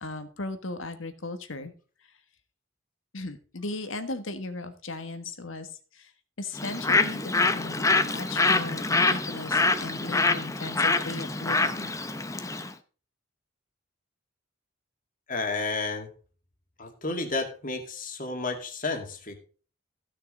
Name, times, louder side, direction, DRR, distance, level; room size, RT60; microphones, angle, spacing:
voice 1, 0.0-1.7 3.1-6.1 6.4-11.9, left 2 dB, 75° left, 9 dB, 1.5 m, -37 dB
Bird, 6.6-12.7, left 3 dB, 15° left, 0.6 m, -25 dB
voice 2, 15.3-16.1 16.8-19.4, left 3 dB, 40° left, 4 dB, 2.2 m, -31 dB
15.0 x 6.6 x 3.9 m, 0.39 s
head